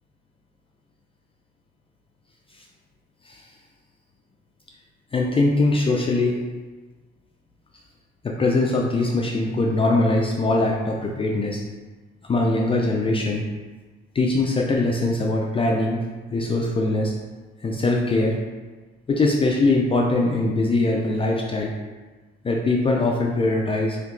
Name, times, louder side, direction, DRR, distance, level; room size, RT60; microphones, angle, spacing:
voice 1, 5.1-6.4 8.2-11.6 12.2-13.5 14.1-16.1 16.3-17.1 17.6-18.4 19.1-21.7 22.4-24.0, left 2 dB, 30° left, -1 dB, 0.4 m, -22 dB
2.8 x 2.2 x 3.7 m, 1.3 s
cardioid pair, 90°, 20 cm